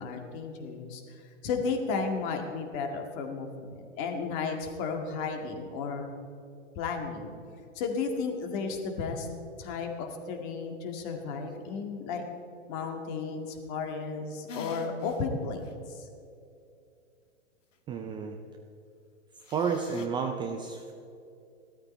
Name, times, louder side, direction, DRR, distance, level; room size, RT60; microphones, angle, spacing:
voice 1, 0.0-6.1 6.8-7.3 7.7-9.3 9.6-12.2 12.7-16.1, left 4 dB, 40° left, 4 dB, 2.1 m, -34 dB
sound 1, 14.5-15.2 15.6-15.7 19.4-20.1, left 5 dB, 90° left, 1.5 m, -44 dB
voice 2, 17.9-18.4 19.5-20.9, right 6 dB, 15° right, 4 dB, 0.4 m, -31 dB
16.0 x 13.0 x 4.4 m, 2.6 s
hypercardioid pair, 130°, 37 cm